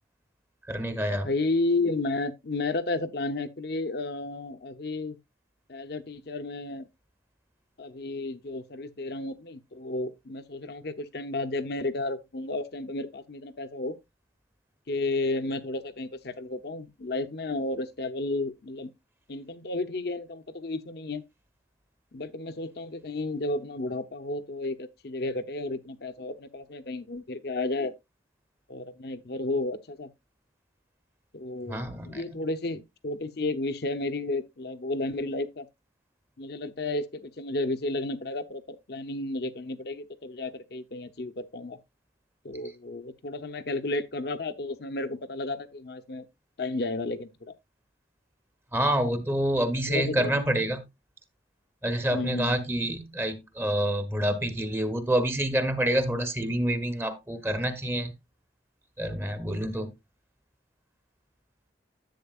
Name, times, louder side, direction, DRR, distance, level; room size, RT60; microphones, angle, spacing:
voice 1, 0.7-1.3 31.7-32.3 48.7-50.8 51.8-58.1 59.0-59.9, right 1 dB, 15° right, 0.9 m, -27 dB
voice 2, 1.2-5.2 5.7-6.9 7.8-14.0 14.9-18.9 19.3-21.2 22.1-27.9 28.7-30.1 31.3-35.7 36.4-41.8 42.4-46.3 46.6-47.5 49.9-50.5 52.1-52.6, left 2 dB, 65° left, 0.8 m, -32 dB
10.5 x 8.0 x 2.4 m
head